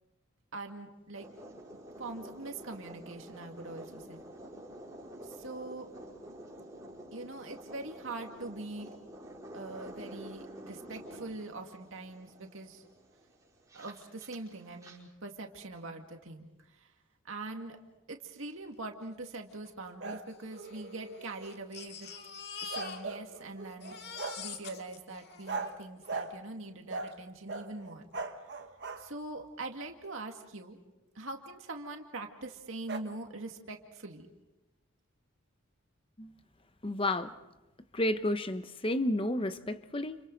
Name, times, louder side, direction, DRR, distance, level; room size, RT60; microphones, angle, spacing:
voice 1, 0.5-1.3 1.7-4.2 5.2-5.9 7.1-8.9 9.5-12.8 13.7-16.9 17.2-17.8 18.1-22.1 22.6-24.0 24.4-28.1 29.0-30.8 31.1-34.3, right 2 dB, 70° right, 3 dB, 2.2 m, -43 dB
sound 1, 1.1-15.0, right 1 dB, 15° right, 5.6 m, -49 dB
Crying sobbing, 19.3-19.4 19.6-19.7 20.5-23.4 23.7-26.2 27.1-27.2 27.5-27.6, left 6 dB, 50° left, 2.0 m, -45 dB
sound 2, 20.0-21.8 22.7-24.5 25.5-25.8 26.1-26.4 26.9-27.2 27.5-29.1 32.9-33.0, right 3 dB, 55° right, 1.4 m, -40 dB
voice 2, 36.8-37.4 37.9-40.2, left 1 dB, 25° left, 10 dB, 0.8 m, -31 dB
30.0 x 30.0 x 4.0 m, 1.0 s
head